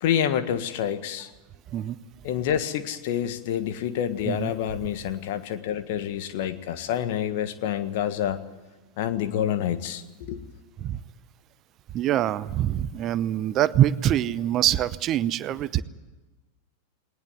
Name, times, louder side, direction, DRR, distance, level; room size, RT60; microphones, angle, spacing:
voice 1, 0.0-1.3 2.2-8.4 9.0-10.0 10.3-10.4, left 10 dB, 50° left, 11 dB, 1.6 m, -27 dB
voice 2, 11.9-15.8, right 12 dB, 35° right, 16 dB, 0.8 m, -24 dB
19.5 x 19.5 x 9.4 m, 1.2 s
figure-of-eight pair, 90°, 0 cm